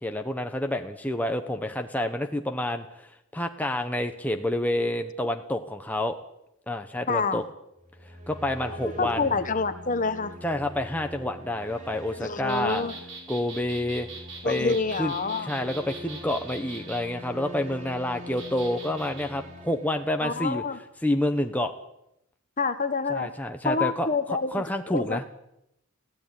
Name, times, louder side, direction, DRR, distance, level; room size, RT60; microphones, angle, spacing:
voice 1, 0.0-3.1 3.3-6.2 6.7-7.4 8.3-9.4 10.4-12.8 13.3-14.1 14.4-15.1 15.4-20.6 21.0-21.7 23.1-25.2, left 1 dB, 5° left, 5 dB, 1.0 m, -28 dB
voice 2, 7.1-7.4 8.7-10.3 12.2-13.0 14.4-15.5 20.2-20.8 22.6-23.3 23.6-25.2, left 4 dB, 35° left, 10 dB, 1.2 m, -27 dB
sound 1, 7.8-20.6, left 1 dB, 35° right, 4.8 m, -44 dB
sound 2, 12.5-17.0 18.4-19.3, right 4 dB, 55° right, 6.0 m, -42 dB
21.0 x 16.0 x 9.1 m, 0.82 s
head